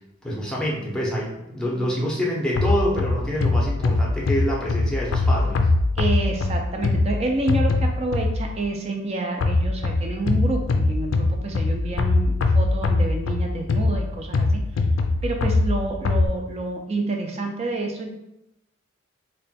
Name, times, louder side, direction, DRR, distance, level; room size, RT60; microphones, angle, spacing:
voice 1, 0.2-5.7, equal, 5° left, -3 dB, 0.7 m, -26 dB
sound 1, 2.6-8.6 9.4-16.3, left 2 dB, 75° left, 0.4 m, -22 dB
voice 2, 6.0-14.8 15.2-18.1, right 2 dB, 30° right, 2 dB, 0.5 m, -28 dB
3.3 x 2.2 x 4.1 m, 0.87 s
head